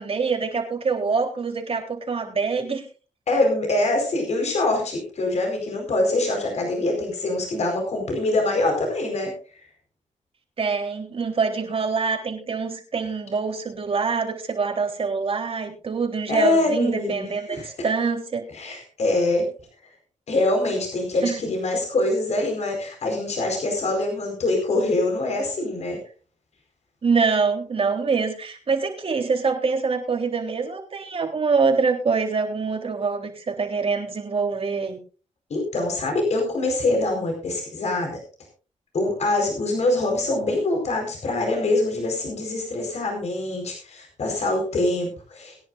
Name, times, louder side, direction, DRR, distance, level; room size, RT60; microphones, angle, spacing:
voice 1, 0.0-2.9 10.6-18.5 21.2-21.4 27.0-35.0, right 5 dB, 50° right, 2 dB, 3.6 m, -25 dB
voice 2, 3.3-9.3 16.3-17.7 18.5-19.5 20.3-26.0 35.5-38.2 38.9-45.6, left 2 dB, 60° left, 1 dB, 4.6 m, -24 dB
22.0 x 10.5 x 2.6 m, 0.36 s
cardioid pair, 90°, 13 cm